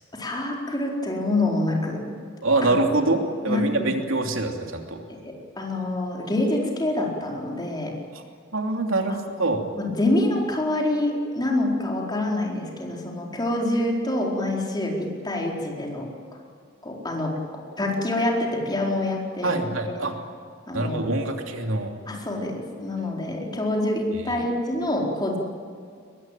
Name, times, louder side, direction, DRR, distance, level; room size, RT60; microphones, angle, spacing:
voice 1, 0.1-2.0 2.6-2.7 3.5-3.9 5.1-7.9 9.4-16.1 16.8-17.4 17.8-19.9 20.7-21.0 22.1-25.4, left 1 dB, 20° left, -1 dB, 4.4 m, -26 dB
voice 2, 2.4-5.0 8.5-9.6 19.4-20.2 20.7-21.9 24.3-24.4, right 2 dB, 80° right, 3 dB, 3.0 m, -25 dB
23.0 x 22.0 x 9.1 m, 2.2 s
head